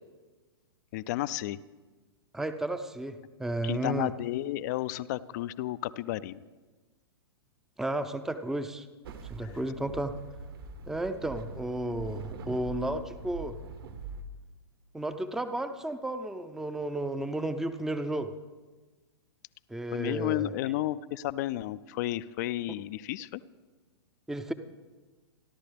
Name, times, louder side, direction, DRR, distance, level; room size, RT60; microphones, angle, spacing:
voice 1, 0.9-1.6 3.6-6.4 9.4-9.6 19.9-23.4, left 15 dB, 40° left, 16 dB, 0.4 m, -32 dB
voice 2, 2.3-4.1 7.8-8.9 9.3-10.1 10.9-13.6 14.9-18.3 19.7-20.5 24.3-24.5, right 1 dB, 5° right, 10 dB, 0.6 m, -33 dB
sound 1, 9.0-14.2, right 4 dB, 60° right, 1.7 m, -43 dB
29.5 x 11.5 x 3.4 m, 1.3 s
figure-of-eight pair, 110°, 14 cm